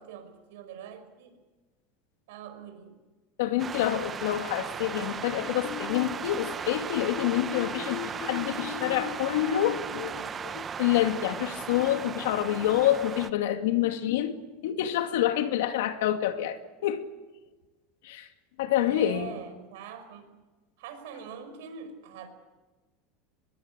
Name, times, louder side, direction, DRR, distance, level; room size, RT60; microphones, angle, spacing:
voice 1, 0.0-1.4 2.3-3.0 18.7-20.3 20.8-22.3, right 7 dB, 75° right, 5.7 m, -43 dB
voice 2, 3.4-14.3 14.6-17.1 18.0-18.3 18.6-19.3, left 12 dB, 80° left, 2.4 m, -27 dB
sound 1, 3.6-13.3, right 7 dB, 20° right, 0.8 m, -37 dB
23.0 x 21.5 x 8.9 m
supercardioid pair, 170°, 0 cm